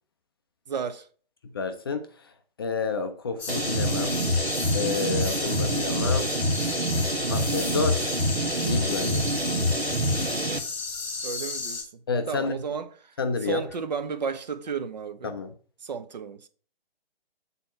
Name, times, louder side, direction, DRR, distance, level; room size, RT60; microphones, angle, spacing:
voice 1, 0.7-1.1 11.2-11.8 12.3-13.1 13.4-15.3 15.8-16.5, right 5 dB, 45° right, 0.9 m, -32 dB
voice 2, 1.4-2.1 2.6-4.2 4.7-6.3 7.3-8.1 8.6-9.3 12.1-12.6 13.2-13.6 15.2-15.5, left 4 dB, 25° left, 0.5 m, -29 dB
sound 1, 3.4-11.8, left 4 dB, 5° left, 1.1 m, -33 dB
sound 2, 3.5-10.6, equal, 85° right, 1.3 m, -26 dB
8.5 x 4.2 x 5.7 m
figure-of-eight pair, 135°, 30 cm